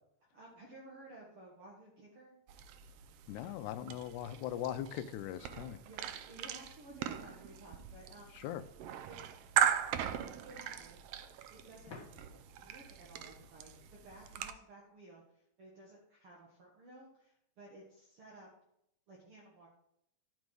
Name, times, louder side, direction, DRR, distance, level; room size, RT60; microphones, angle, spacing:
voice 1, 0.3-2.4 5.8-8.4 9.0-9.4 10.2-11.0 11.5-12.0 12.6-18.5 19.1-19.7, right 2 dB, 50° right, -3 dB, 2.1 m, -55 dB
sound 1, 2.5-14.5, right 10 dB, 85° right, 1.3 m, -39 dB
voice 2, 3.3-5.8 8.3-8.6, left 11 dB, 85° left, 10 dB, 2.0 m, -40 dB
sound 2, 11.9-14.5, left 4 dB, 45° left, 1.6 m, -56 dB
11.5 x 5.2 x 4.8 m, 0.76 s
omnidirectional pair, 3.5 m